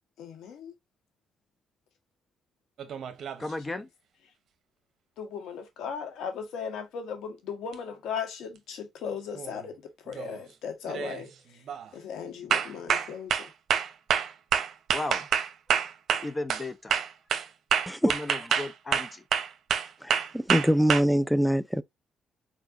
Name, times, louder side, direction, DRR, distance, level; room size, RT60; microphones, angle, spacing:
voice 1, 0.2-0.7 5.2-11.6 11.9-13.5, left 6 dB, 85° left, 1.6 m, -37 dB
sound 1, 2.8-3.5 7.7-7.8 9.3-9.6 10.1-10.4 10.9-11.2 11.7-11.9 12.5-16.7 16.9-21.0, right 8 dB, 65° right, 0.9 m, -27 dB
voice 2, 3.4-3.9 14.9-15.3 16.2-16.9 18.0-19.2 20.1-20.2, left 2 dB, 25° left, 0.9 m, -35 dB
voice 3, 20.0-21.8, equal, ahead, 0.5 m, -24 dB
4.6 x 4.2 x 2.6 m
cardioid pair, 90°, 0 cm